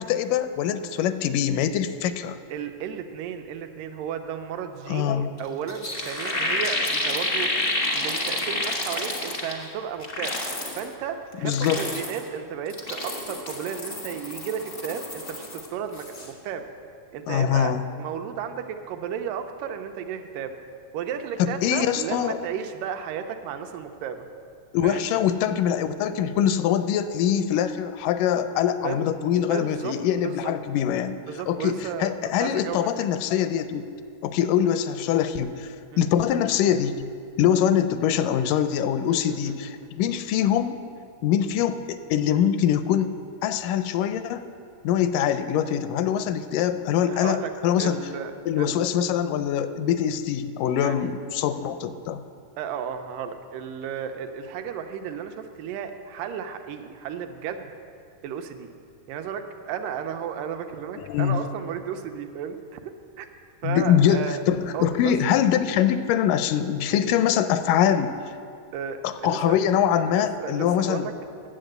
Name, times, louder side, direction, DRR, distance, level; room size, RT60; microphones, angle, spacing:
voice 1, 0.0-2.4 4.9-5.3 11.4-11.9 17.3-17.8 21.4-22.4 24.7-31.2 31.5-33.9 34.2-35.7 36.0-37.1 37.4-40.8 41.2-43.1 43.4-44.5 44.8-48.0 48.5-52.2 61.0-61.4 63.6-68.1 69.0-71.1, left 9 dB, 85° left, 11 dB, 2.2 m, -23 dB
voice 2, 2.5-7.5 7.9-10.4 10.7-16.7 17.1-20.5 20.9-24.2 24.8-25.0 28.8-29.1 29.5-29.9 30.2-30.5 31.3-32.8 35.9-36.0 39.1-39.9 47.1-47.5 47.8-48.8 50.7-51.1 52.6-57.7 58.2-58.7 59.1-62.8 63.2-63.3 63.6-64.4 64.7-65.1 68.7-69.6 70.1-71.1, right 8 dB, 85° right, 6 dB, 2.3 m, -34 dB
sound 1, 5.4-5.5 5.7-9.7 10.0-10.8 11.3-12.3 12.7-15.7 15.9-16.3, left 1 dB, 50° left, 0.6 m, -29 dB
10.0 x 7.6 x 7.9 m, 2.3 s
omnidirectional pair, 3.7 m